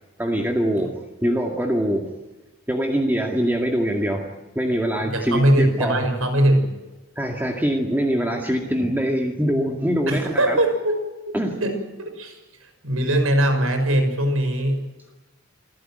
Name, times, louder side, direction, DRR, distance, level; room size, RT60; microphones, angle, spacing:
voice 1, 0.2-2.1 2.7-4.3 4.6-6.1 7.2-10.6 11.3-11.6, equal, 10° right, 1 dB, 2.2 m, -23 dB
voice 2, 5.1-6.7 10.1-11.0 11.3-11.4 11.6-14.8, right 1 dB, 75° right, 6 dB, 6.2 m, -21 dB
27.5 x 15.5 x 9.3 m, 1.1 s
head